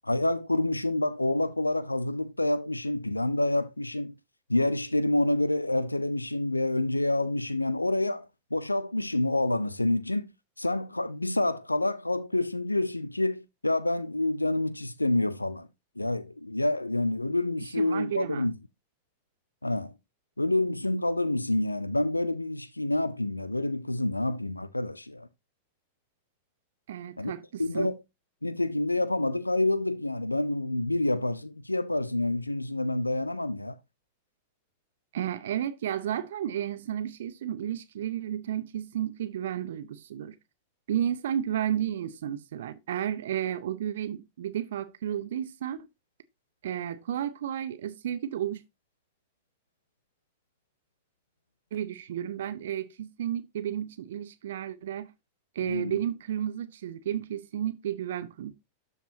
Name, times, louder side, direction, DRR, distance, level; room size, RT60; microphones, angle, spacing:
voice 1, 0.0-4.1 4.5-10.3 10.6-15.7 16.0-18.5 19.6-19.9 20.4-25.3 27.2-27.3 27.6-28.0 28.4-33.8 55.6-56.0, left 2 dB, 85° left, 0.4 m, -28 dB
voice 2, 17.8-18.5 26.9-27.9 35.1-40.4 40.9-45.9 46.6-48.6 51.7-55.1 55.5-58.5, right 10 dB, 60° right, 0.6 m, -32 dB
12.0 x 4.7 x 2.8 m
figure-of-eight pair, 90°, 0 cm